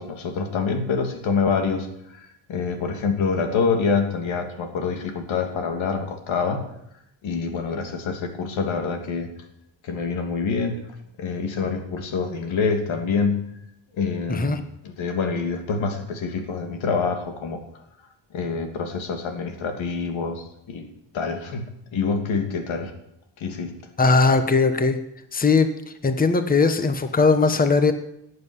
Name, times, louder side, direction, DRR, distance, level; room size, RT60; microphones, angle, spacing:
voice 1, 0.0-6.6 7.2-9.3 9.8-10.8 11.2-13.4 14.0-17.6 18.3-20.8 21.1-21.6 21.9-22.9 23.4-23.7, left 5 dB, 85° left, 6 dB, 2.9 m, -26 dB
voice 2, 14.3-14.6 24.0-25.0 25.3-25.7 26.0-27.9, left 4 dB, 20° left, 9 dB, 1.3 m, -19 dB
18.0 x 7.9 x 9.8 m, 0.78 s
cardioid pair, 130°, 46 cm